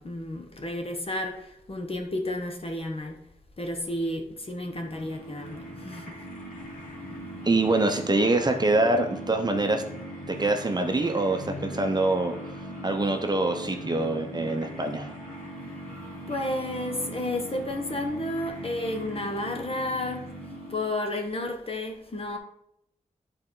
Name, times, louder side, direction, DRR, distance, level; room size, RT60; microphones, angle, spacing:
voice 1, 0.0-3.2 3.6-6.2 16.3-20.2 20.7-22.4, left 1 dB, 45° left, 3 dB, 1.3 m, -32 dB
sound 1, 4.4-21.1, equal, 80° left, 2.8 m, -40 dB
voice 2, 7.4-9.8 10.3-12.3 12.8-15.1, right 2 dB, 30° right, 4 dB, 0.9 m, -25 dB
10.5 x 4.4 x 3.9 m, 0.77 s
wide cardioid pair, 90°, 14 cm